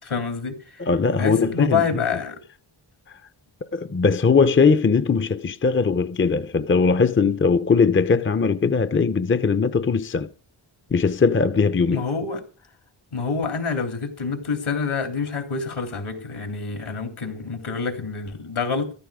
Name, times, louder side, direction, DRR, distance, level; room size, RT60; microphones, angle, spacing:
voice 1, 0.0-0.9 1.2-2.4 11.9-12.4 13.1-18.9, left 5 dB, 80° left, 3.4 m, -27 dB
voice 2, 0.8-2.0 3.7-10.3 10.9-12.0, left 5 dB, 25° left, 0.6 m, -20 dB
14.0 x 13.0 x 5.0 m
wide cardioid pair, 110°, 49 cm